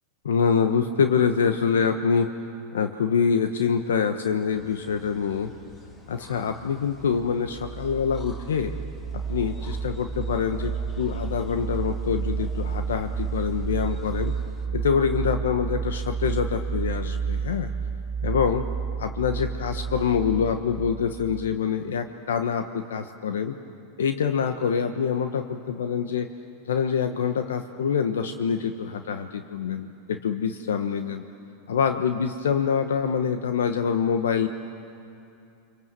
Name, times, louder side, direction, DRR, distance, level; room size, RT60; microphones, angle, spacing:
voice 1, 0.2-2.3 2.7-5.5 6.1-8.7 9.1-14.3 14.7-17.7 18.2-18.6 19.0-23.6 24.0-26.3 26.6-31.2 31.7-34.5, left 6 dB, 80° left, 7 dB, 1.1 m, -25 dB
sound 1, 4.5-14.7, left 3 dB, 35° left, 4.3 m, -46 dB
sound 2, 7.1-21.6, right 6 dB, 35° right, 0.7 m, -31 dB
30.0 x 26.0 x 7.7 m, 2.7 s
hypercardioid pair, 95°, 0 cm